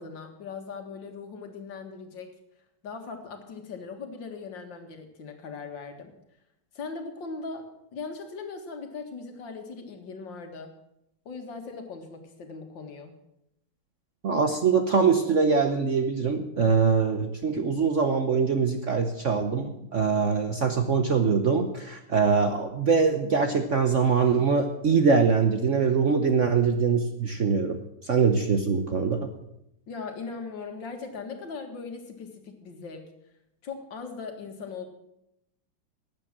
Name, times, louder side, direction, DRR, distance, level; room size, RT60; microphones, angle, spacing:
voice 1, 0.0-2.3 2.8-6.1 6.7-7.6 7.9-10.7 11.3-13.1 29.9-33.0 33.6-34.9, left 4 dB, 65° left, 5 dB, 2.4 m, -39 dB
voice 2, 14.2-29.3, right 5 dB, 50° right, 6 dB, 0.9 m, -23 dB
12.5 x 8.9 x 7.4 m, 0.81 s
omnidirectional pair, 2.2 m